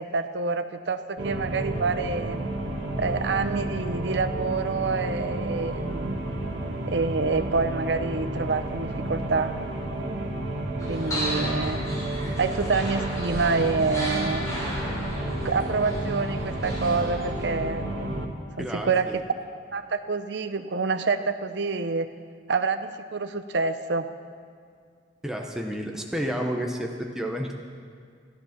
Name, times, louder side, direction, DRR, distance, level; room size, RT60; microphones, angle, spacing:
voice 1, 0.0-2.4 3.0-6.2 6.9-9.5 10.9-11.9 12.4-14.6 14.9-15.1 15.4-17.9 18.6-19.1 19.7-22.1 22.5-24.1, right 4 dB, 70° right, 10 dB, 0.6 m, -27 dB
sound 1, 1.2-18.3, right 1 dB, 85° right, 1.5 m, -31 dB
sound 2, 10.8-17.4, equal, 20° left, 4.0 m, -34 dB
voice 2, 18.6-19.1 25.2-27.5, equal, 5° right, 1 dB, 0.9 m, -30 dB
13.5 x 13.0 x 5.9 m, 2.1 s
head